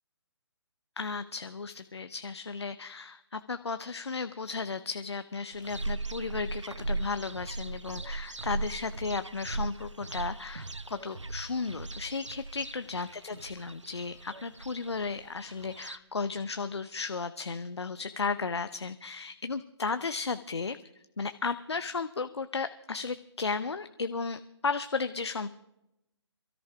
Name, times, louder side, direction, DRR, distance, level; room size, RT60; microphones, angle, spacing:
voice 1, 1.0-20.8 21.2-25.5, left 4 dB, 65° left, 11 dB, 0.7 m, -34 dB
sound 1, 5.5-16.0, right 2 dB, 80° right, 0.8 m, -38 dB
28.0 x 13.5 x 3.5 m, 0.86 s
figure-of-eight pair, 140°, 15 cm